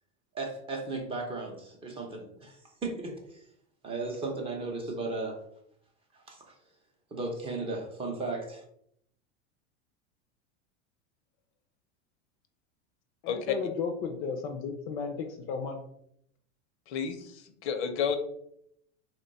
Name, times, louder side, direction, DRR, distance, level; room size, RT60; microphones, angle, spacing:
voice 1, 0.3-3.4 3.8-5.4 6.1-6.4 7.1-8.6, right 3 dB, 15° right, 1 dB, 0.6 m, -35 dB
voice 2, 13.2-15.8, left 5 dB, 40° left, 4 dB, 0.4 m, -34 dB
voice 3, 16.9-18.2, left 7 dB, 80° left, 8 dB, 0.7 m, -31 dB
3.0 x 2.2 x 3.9 m, 0.71 s
supercardioid pair, 140°, 34 cm